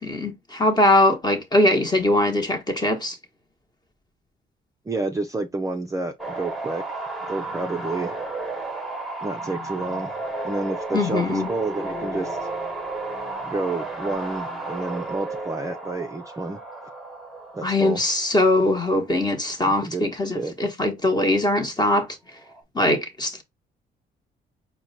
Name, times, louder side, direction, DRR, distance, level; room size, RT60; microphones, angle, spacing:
voice 1, 0.0-3.2 10.9-11.5 17.6-22.2 22.7-23.4, left 1 dB, 20° left, 1.2 m, -21 dB
voice 2, 4.9-6.8 7.3-8.1 9.2-10.1 10.4-12.4 13.4-16.6 17.5-18.0 19.8-20.1 20.3-20.5, right 3 dB, 15° right, 0.5 m, -29 dB
sound 1, 6.2-18.6 22.4-22.6, right 2 dB, ahead, 1.1 m, -33 dB
4.4 x 2.2 x 4.0 m
cardioid pair, 90°, 20 cm